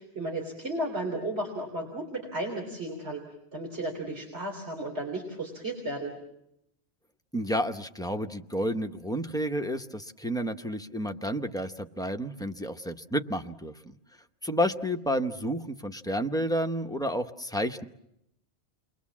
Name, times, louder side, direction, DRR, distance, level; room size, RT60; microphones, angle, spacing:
voice 1, 0.0-3.2 3.5-6.1, right 1 dB, 75° right, 0 dB, 3.8 m, -34 dB
voice 2, 7.3-13.9 14.4-17.8, equal, 5° left, 5 dB, 0.8 m, -30 dB
29.0 x 22.5 x 7.3 m, 0.82 s
omnidirectional pair, 1.1 m